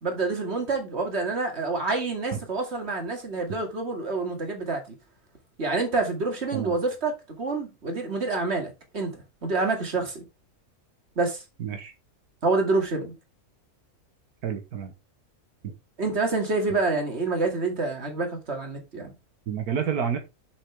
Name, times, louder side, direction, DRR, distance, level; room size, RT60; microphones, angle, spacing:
voice 1, 0.0-4.8 5.6-10.2 11.2-11.4 12.4-13.1 16.0-19.1, right 3 dB, 45° right, 2.6 m, -27 dB
voice 2, 11.6-11.9 14.4-14.9 19.5-20.2, right 7 dB, 85° right, 1.7 m, -29 dB
7.2 x 7.0 x 3.5 m
omnidirectional pair, 1.6 m